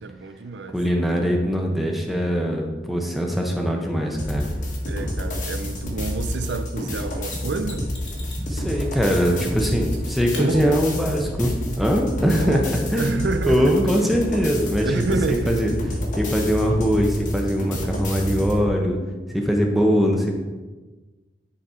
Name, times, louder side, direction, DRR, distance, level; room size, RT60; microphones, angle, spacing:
voice 1, 0.0-0.8 4.9-7.9 9.3-9.4 10.4-10.8 12.4-13.9 14.8-15.7, right 3 dB, 75° right, 10 dB, 0.5 m, -29 dB
voice 2, 0.7-4.5 8.3-12.6 12.9-13.1 13.5-15.7 16.2-19.0 19.3-20.3, equal, ahead, 1 dB, 0.9 m, -22 dB
sound 1, 4.2-18.6, left 1 dB, 45° left, 1.3 m, -29 dB
Mechanisms, 7.3-8.5 9.6-10.0 10.3-10.5 13.2-13.3, left 3 dB, 80° left, 1.7 m, -40 dB
9.9 x 4.1 x 4.4 m, 1.3 s
head